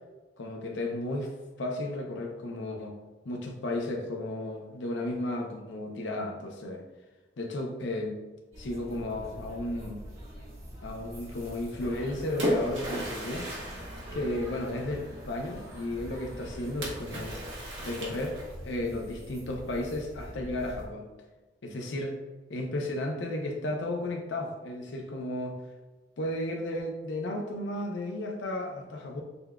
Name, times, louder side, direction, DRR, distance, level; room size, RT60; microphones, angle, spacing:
voice 1, 0.4-1.3 1.6-3.0 3.2-6.8 7.4-8.2 8.6-10.0 10.8-13.5 14.1-17.3 17.8-21.1 21.6-22.2 22.5-25.5 26.2-29.2, left 1 dB, 85° left, 1 dB, 0.6 m, -34 dB
sound 1, 8.5-20.8, equal, 35° right, 1.2 m, -45 dB
sound 2, 11.8-17.5, right 1 dB, 60° right, 1.0 m, -47 dB
Splash splatter, 11.8-15.0 16.8-18.7, equal, 85° right, 1.1 m, -35 dB
6.7 x 2.3 x 2.3 m, 1.2 s
head